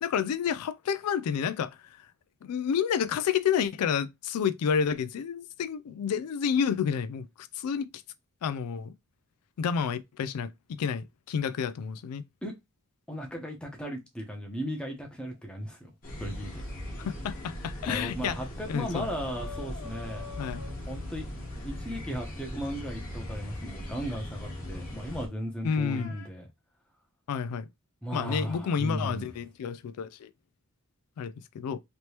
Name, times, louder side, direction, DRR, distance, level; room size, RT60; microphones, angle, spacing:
voice 1, 0.0-2.1 2.4-8.0 8.4-8.9 9.6-12.2 17.0-18.4 18.7-19.1 20.4-20.6 25.6-26.1 27.3-27.7 28.1-30.3 31.2-31.8, left 7 dB, 90° left, 0.3 m, -30 dB
voice 2, 13.1-15.9 16.2-16.6 17.8-20.3 20.9-21.3 21.6-26.5 28.0-29.3, equal, 5° left, 0.8 m, -36 dB
sound 1, 16.0-25.3, left 1 dB, 40° left, 1.2 m, -39 dB
sound 2, 18.7-21.3 23.9-24.0 25.6-26.3, left 6 dB, 60° left, 1.0 m, -46 dB
3.2 x 2.9 x 2.9 m
head